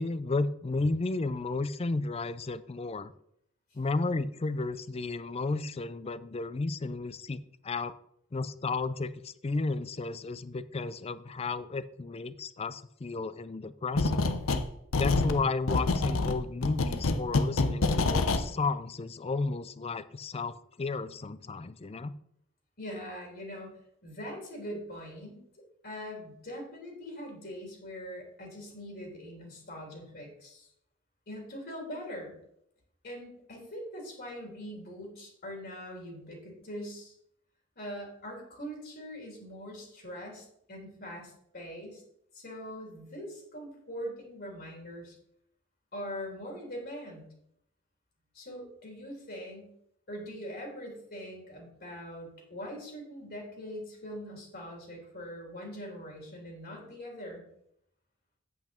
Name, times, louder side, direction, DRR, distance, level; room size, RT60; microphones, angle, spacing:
voice 1, 0.0-3.1 3.7-7.9 8.3-14.3 15.0-22.1, left 3 dB, 30° left, 16 dB, 0.4 m, -33 dB
sound 1, 14.0-14.7 14.9-18.4, left 3 dB, 90° left, 0.8 m, -27 dB
voice 2, 22.8-23.7 24.0-25.4 25.8-30.7 31.3-32.3 33.0-37.1 37.7-42.0 42.3-45.1 45.9-47.3 48.3-49.7 50.1-57.4, equal, 50° left, 0 dB, 3.5 m, -42 dB
8.3 x 8.2 x 4.4 m, 0.73 s
head